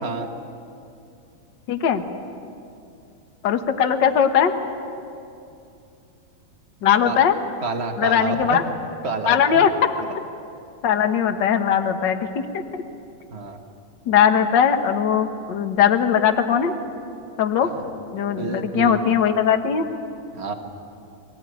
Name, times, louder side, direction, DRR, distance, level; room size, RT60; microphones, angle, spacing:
voice 1, 1.7-2.0 3.4-4.5 6.8-7.3 8.0-8.6 9.3-9.7 10.8-12.5 14.1-16.7 17.4-17.7 18.1-19.9, left 8 dB, 60° left, 6 dB, 1.2 m, -19 dB
voice 2, 7.6-8.6 9.0-9.6 13.3-13.6 17.6-17.8 18.4-19.0 20.3-20.5, right 3 dB, 75° right, 4 dB, 0.6 m, -28 dB
24.0 x 18.0 x 9.5 m, 2.6 s
omnidirectional pair, 3.5 m